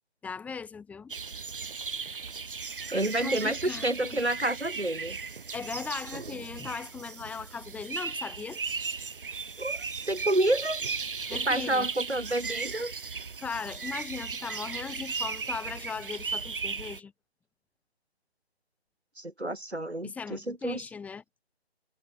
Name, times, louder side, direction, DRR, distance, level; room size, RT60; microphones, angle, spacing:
voice 1, 0.2-1.1 3.2-4.2 5.5-8.6 11.3-11.9 13.4-17.1 20.0-21.4, left 5 dB, 5° left, 2.9 m, -38 dB
sound 1, 1.1-17.0, right 5 dB, 55° right, 2.0 m, -36 dB
voice 2, 2.9-5.2 9.6-10.8 11.3-12.9 19.2-20.8, right 1 dB, 85° right, 5.9 m, -29 dB
figure-of-eight pair, 150°, 32 cm